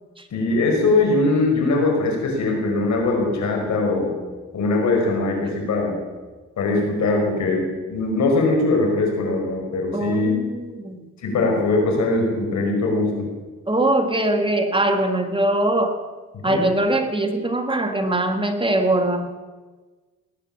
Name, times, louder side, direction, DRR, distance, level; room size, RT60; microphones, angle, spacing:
voice 1, 0.3-4.1 4.5-6.0 6.6-10.3 11.2-13.3 16.5-16.7, left 2 dB, 70° left, 1 dB, 5.3 m, -21 dB
voice 2, 9.9-11.0 13.7-16.0 16.4-19.3, right 1 dB, 15° right, 5 dB, 1.8 m, -22 dB
20.0 x 9.2 x 7.3 m, 1.3 s
cardioid pair, 90°, 30 cm